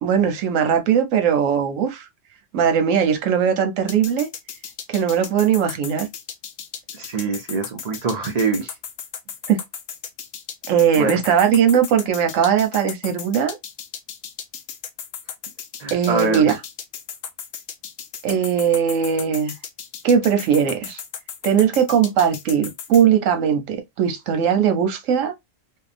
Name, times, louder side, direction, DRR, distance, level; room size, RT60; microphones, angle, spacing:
voice 1, 0.0-2.1 2.5-4.3 4.9-6.1 9.5-9.6 10.7-13.6 15.9-16.6 18.2-19.5 20.0-21.0 21.4-25.3, right 8 dB, 85° right, 1.1 m, -19 dB
sound 1, 3.9-23.0, left 8 dB, 90° left, 0.9 m, -35 dB
voice 2, 7.0-8.7 11.0-11.2 15.8-16.5, right 4 dB, 50° right, 0.5 m, -24 dB
2.7 x 2.1 x 2.5 m
omnidirectional pair, 1.3 m